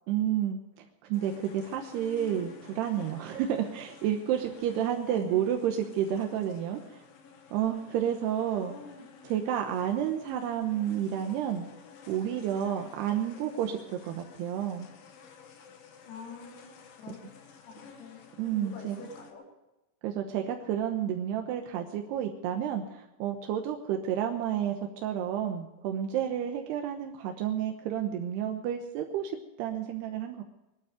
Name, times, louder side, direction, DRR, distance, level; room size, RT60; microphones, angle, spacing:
voice 1, 0.1-0.8 1.1-7.0 7.5-8.8 9.2-11.7 12.1-14.9 18.4-19.0 20.0-30.4, right 10 dB, 75° right, 3 dB, 2.6 m, -30 dB
sound 1, 1.1-19.3, left 5 dB, 60° left, 2.7 m, -52 dB
voice 2, 5.1-5.6 8.6-9.1 16.1-17.2 17.7-19.4, left 5 dB, 90° left, 0 dB, 6.5 m, -46 dB
21.0 x 12.5 x 5.1 m, 0.97 s
omnidirectional pair, 5.9 m